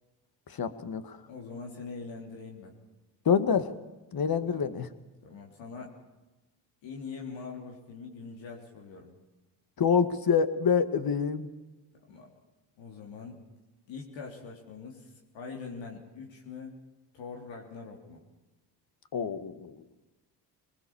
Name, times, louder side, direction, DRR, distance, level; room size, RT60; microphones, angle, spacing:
voice 1, 0.5-1.2 3.3-3.7 4.1-4.9 9.8-11.5 19.1-19.7, left 6 dB, 50° left, 12 dB, 2.1 m, -26 dB
voice 2, 1.3-2.7 4.4-4.7 5.2-5.9 6.8-9.2 12.1-12.3 12.8-13.4 13.9-16.8 17.1-18.2, left 4 dB, 75° left, 0 dB, 3.6 m, -43 dB
22.5 x 21.5 x 7.3 m, 1.1 s
hypercardioid pair, 55°, 46 cm